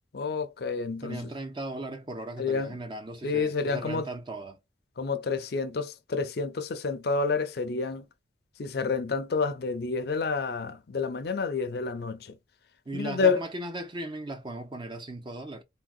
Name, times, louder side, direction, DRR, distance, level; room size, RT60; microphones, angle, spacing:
voice 1, 0.1-1.3 2.4-2.7 3.2-4.1 5.0-8.0 8.6-12.3 12.9-13.5, left 4 dB, 60° left, 0.5 m, -29 dB
voice 2, 1.0-4.6 12.9-15.6, right 2 dB, 25° right, 0.5 m, -37 dB
3.6 x 2.1 x 2.4 m
head